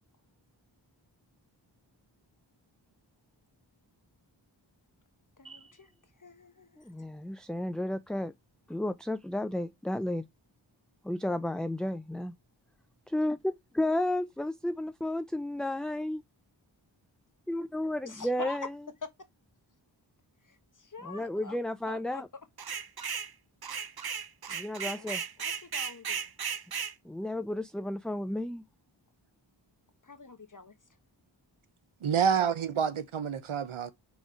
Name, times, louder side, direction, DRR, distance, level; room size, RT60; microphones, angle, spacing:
voice 1, 5.4-5.9 6.2-6.8 18.0-18.7 19.0-19.1 20.4-21.6 21.9-22.2 25.0-26.3 30.0-30.7, left 4 dB, 40° left, 1.2 m, -44 dB
voice 2, 6.8-8.3 8.7-10.3 11.0-12.3 13.1-13.4 13.8-16.2 17.5-18.7 21.0-22.3 24.5-25.2 27.0-28.6, left 1 dB, ahead, 0.3 m, -32 dB
sound 1, 22.6-23.3 23.6-26.9, right 7 dB, 50° right, 0.7 m, -35 dB
voice 3, 32.0-33.9, right 7 dB, 90° right, 0.8 m, -28 dB
4.5 x 4.3 x 5.0 m
wide cardioid pair, 45°, 48 cm